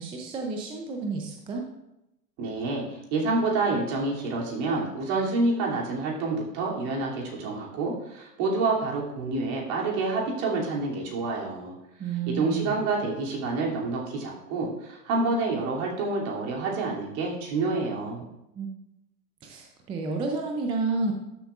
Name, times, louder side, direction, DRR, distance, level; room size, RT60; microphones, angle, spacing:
voice 1, 0.0-1.6 12.0-12.8 18.6-18.7 19.4-21.1, right 4 dB, 10° right, 2 dB, 0.4 m, -30 dB
voice 2, 2.4-11.7 12.1-18.2, right 3 dB, 45° right, -2 dB, 2.8 m, -28 dB
12.5 x 7.5 x 2.4 m, 0.88 s
hypercardioid pair, 120°, 48 cm